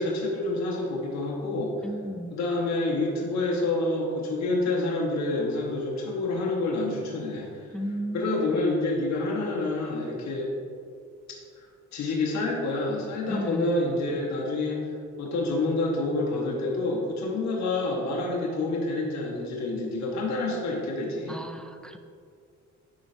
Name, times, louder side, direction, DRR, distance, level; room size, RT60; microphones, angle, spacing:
voice 1, 0.0-1.8 2.3-7.5 8.1-10.5 11.9-14.9 15.2-21.4, left 2 dB, 65° left, -2 dB, 1.1 m, -28 dB
voice 2, 1.8-2.4 7.7-8.7 13.3-13.9 21.3-22.0, equal, 5° left, 6 dB, 0.3 m, -35 dB
10.0 x 4.3 x 2.6 m, 2.3 s
cardioid pair, 90°, 30 cm